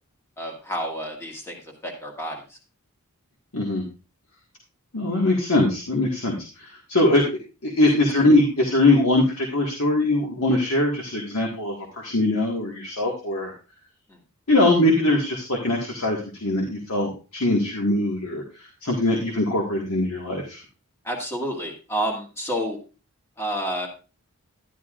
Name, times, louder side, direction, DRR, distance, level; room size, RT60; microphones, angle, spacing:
voice 1, 0.4-2.6 14.1-14.2 21.0-22.8 23.4-23.9, equal, 10° left, 1 dB, 1.8 m, -30 dB
voice 2, 3.5-3.8 4.9-7.2 7.6-13.5 14.5-20.6, left 2 dB, 70° left, -1 dB, 1.8 m, -22 dB
12.0 x 11.0 x 2.5 m, 0.32 s
head